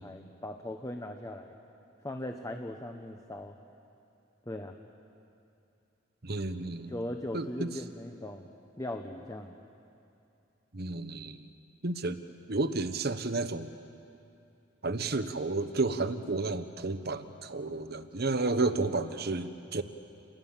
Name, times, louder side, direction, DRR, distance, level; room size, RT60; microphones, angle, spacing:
voice 1, 0.0-1.5 2.0-3.6 4.5-4.7 6.9-8.5 8.8-9.5, left 1 dB, 15° left, 4 dB, 1.0 m, -39 dB
voice 2, 6.2-6.9 7.3-7.7 10.7-11.4 11.8-12.2 12.5-13.7 14.8-19.8, right 3 dB, 55° right, 11 dB, 1.1 m, -31 dB
28.5 x 21.0 x 7.4 m, 2.7 s
head